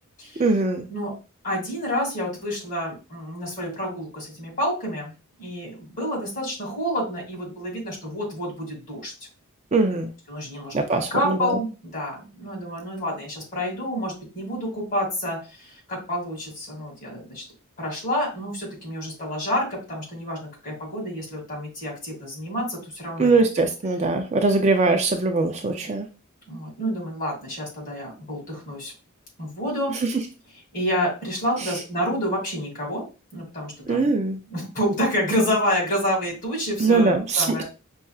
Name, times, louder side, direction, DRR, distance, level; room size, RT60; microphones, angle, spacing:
voice 1, 0.4-0.9 9.7-10.1 10.7-11.6 23.2-26.1 33.9-34.4 36.8-37.6, right 3 dB, 30° right, 4 dB, 0.5 m, -21 dB
voice 2, 1.4-5.1 5.4-9.1 10.3-17.4 17.8-23.4 26.5-28.9 29.4-29.9 30.7-33.0 33.3-34.1 34.5-37.6, equal, 40° left, -2 dB, 2.3 m, -28 dB
5.4 x 2.5 x 2.4 m, 0.31 s
head